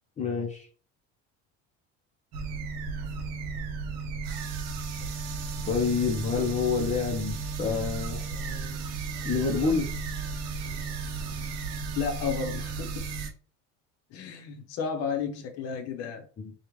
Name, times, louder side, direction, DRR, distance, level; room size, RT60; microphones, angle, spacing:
voice 1, 0.2-0.7 5.7-8.2 9.2-9.9 16.4-16.5, left 5 dB, 20° left, 0.7 m, -27 dB
sound 1, 2.3-13.3, right 4 dB, 55° right, 0.9 m, -34 dB
voice 2, 11.9-13.0 14.1-16.2, left 6 dB, 50° left, 0.9 m, -32 dB
5.1 x 2.4 x 3.1 m
cardioid pair, 170°, 31 cm